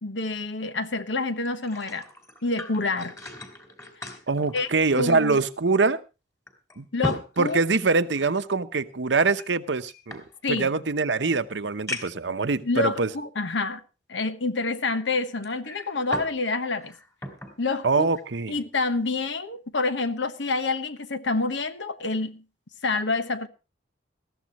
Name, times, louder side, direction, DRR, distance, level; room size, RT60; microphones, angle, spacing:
voice 1, 0.0-2.0 2.4-3.1 4.0-4.2 4.5-4.7 5.0-5.4 6.9-7.6 10.4-10.7 12.6-13.8 14.1-16.9 17.6-18.1 18.5-22.4 22.8-23.5, left 3 dB, 75° left, 1.2 m, -27 dB
sound 1, 1.4-5.5 5.8-5.9 6.5-8.5 9.3-10.8 11.3-11.4 11.9-12.3 13.1-13.2 15.4-16.4 16.7-17.6 18.0-18.2, left 1 dB, 15° left, 2.7 m, -38 dB
voice 2, 4.3-6.0 6.8-6.9 7.4-13.1 17.8-18.6, right 4 dB, 70° right, 0.9 m, -24 dB
20.0 x 14.0 x 3.0 m
head